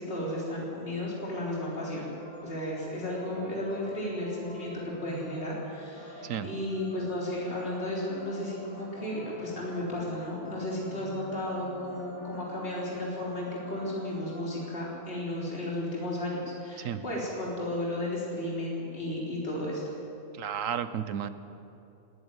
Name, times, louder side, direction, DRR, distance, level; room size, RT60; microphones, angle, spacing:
voice 1, 0.0-2.1 2.4-19.8, left 1 dB, 40° left, -5 dB, 4.1 m, -34 dB
sound 1, 1.0-14.8, left 1 dB, 65° left, 4.3 m, -47 dB
voice 2, 6.2-6.5 16.8-17.0 20.3-21.3, right 9 dB, 60° right, 12 dB, 1.2 m, -33 dB
18.5 x 14.0 x 9.7 m, 2.8 s
omnidirectional pair, 1.6 m